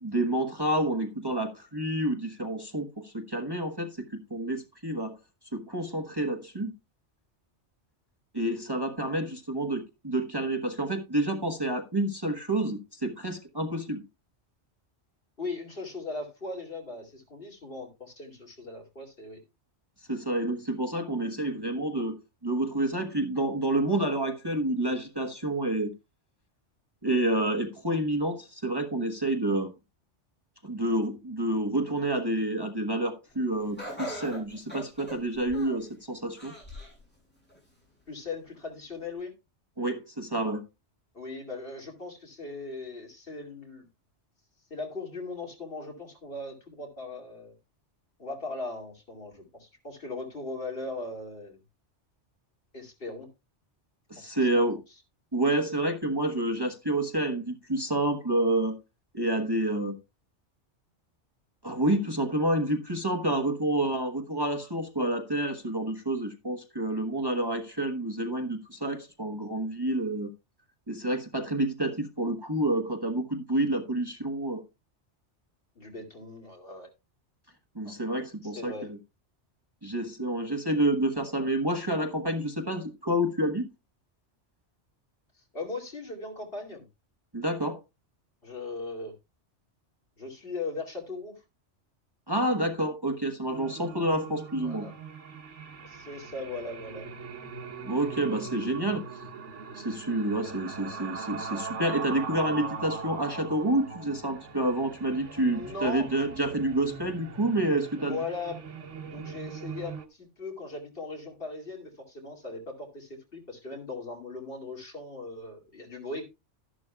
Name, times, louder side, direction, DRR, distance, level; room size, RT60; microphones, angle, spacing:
voice 1, 0.0-5.2 5.5-6.7 8.3-14.0 20.1-25.9 27.0-29.7 30.6-36.5 39.8-40.6 54.1-54.8 55.3-58.8 59.1-60.0 61.6-70.3 70.9-74.6 77.7-79.0 79.8-83.7 87.3-87.8 92.3-94.9 97.8-99.0 99.7-108.2, right 1 dB, 20° right, 1.1 m, -29 dB
voice 2, 15.4-19.4 38.1-39.3 41.1-43.9 44.7-47.6 48.2-51.6 52.7-53.3 54.2-54.6 75.8-76.9 77.8-78.0 78.4-78.9 85.5-86.8 88.4-89.1 90.2-91.4 94.6-94.9 95.8-97.1 105.5-106.1 108.0-108.6 109.0-116.3, left 3 dB, 50° left, 2.7 m, -39 dB
Laughter, 33.8-35.9 36.4-37.0 37.5-37.6 38.5-38.6, left 1 dB, 10° left, 8.0 m, -40 dB
sound 1, 93.5-110.1, right 5 dB, 90° right, 1.4 m, -40 dB
12.5 x 11.5 x 2.3 m
omnidirectional pair, 1.2 m